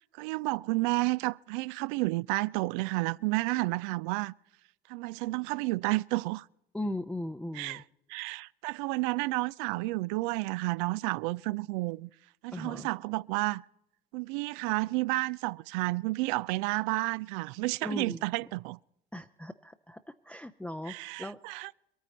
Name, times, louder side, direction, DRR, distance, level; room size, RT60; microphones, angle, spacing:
voice 1, 0.2-4.3 4.9-6.4 7.5-7.8 8.1-12.1 12.4-13.6 14.1-18.8 20.9-21.7, right 22 dB, 60° right, 0.4 m, -31 dB
voice 2, 6.7-7.8 12.5-12.9 17.8-18.2 19.1-21.6, left 1 dB, 5° left, 0.6 m, -38 dB
24.0 x 9.4 x 4.3 m
figure-of-eight pair, 60°, 30 cm